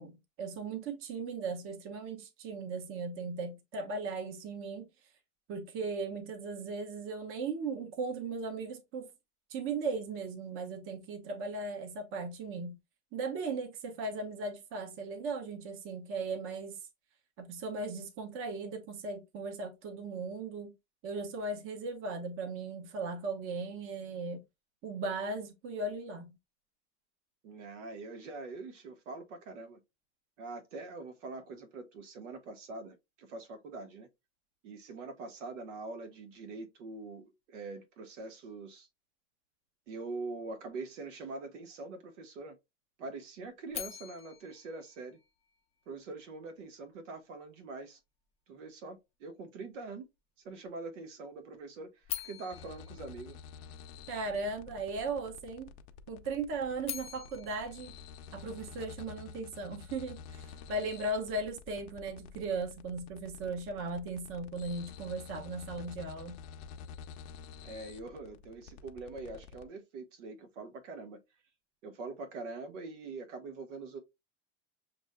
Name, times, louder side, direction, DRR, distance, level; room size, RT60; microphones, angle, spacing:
voice 1, 0.0-4.9 5.5-9.1 9.5-12.8 13.1-16.8 17.4-20.7 21.0-24.4 24.8-26.4 54.1-55.7 56.1-58.0 58.3-66.4, right 3 dB, 35° right, 0.9 m, -37 dB
voice 2, 27.4-29.8 30.4-34.1 34.6-38.9 39.9-42.6 43.0-45.2 45.9-48.0 48.5-50.1 50.4-53.4 67.6-71.2 71.8-74.0, right 3 dB, 80° right, 1.3 m, -44 dB
sound 1, 43.7-45.9 52.0-54.2 56.6-59.0, left 11 dB, 20° left, 0.4 m, -45 dB
sound 2, 52.5-69.7, left 6 dB, 60° left, 0.6 m, -50 dB
7.0 x 2.6 x 2.2 m
supercardioid pair, 140°, 36 cm